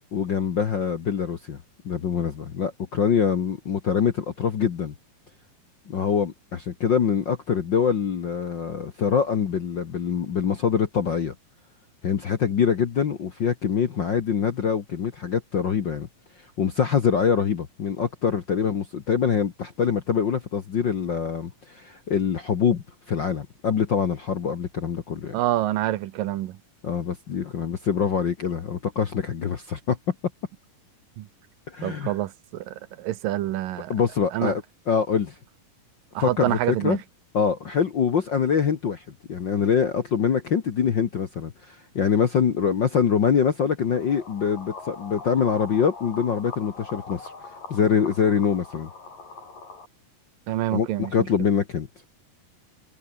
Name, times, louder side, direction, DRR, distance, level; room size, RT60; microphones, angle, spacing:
voice 1, 0.1-1.6 1.8-4.9 5.9-11.3 12.0-16.1 16.6-25.4 26.8-30.0 31.7-32.1 33.9-35.4 36.2-37.0 37.3-47.3 47.7-48.9 50.7-51.9, left 7 dB, 55° left, 1.3 m, -24 dB
voice 2, 25.3-26.6 31.2-31.3 31.8-33.9 34.3-34.5 36.2-37.0 50.5-51.1, right 14 dB, 85° right, 2.8 m, -27 dB
sound 1, 43.8-49.9, left 4 dB, 75° left, 9.0 m, -42 dB
omnidirectional pair, 3.9 m